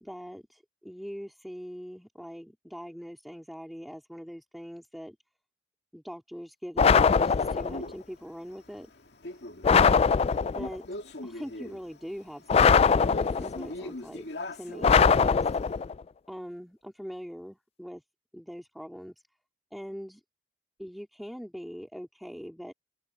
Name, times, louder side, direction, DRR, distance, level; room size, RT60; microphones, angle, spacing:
voice 1, 0.0-5.2 5.9-8.9 9.3-9.4 10.5-10.8 11.2-15.5 16.3-18.0 18.3-19.1 19.7-20.2 20.8-22.7, equal, ahead, 2.6 m, -42 dB
sound 1, 6.8-7.8 9.6-10.7 12.5-13.7 14.8-15.9, left 6 dB, 35° left, 0.3 m, -21 dB
Male speech man speaking, 7.2-15.7, left 1 dB, 70° left, 2.3 m, -42 dB
open air
head